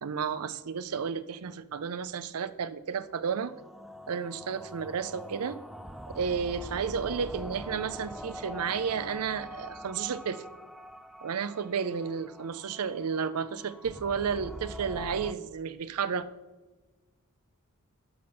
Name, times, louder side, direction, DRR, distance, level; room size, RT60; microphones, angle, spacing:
voice 1, 0.0-3.5 4.1-5.6 6.1-10.4 11.2-16.3, right 6 dB, 90° right, 14 dB, 0.5 m, -32 dB
sound 1, 3.1-15.3, equal, ahead, 0.3 m, -44 dB
11.0 x 4.3 x 6.4 m, 1.3 s
head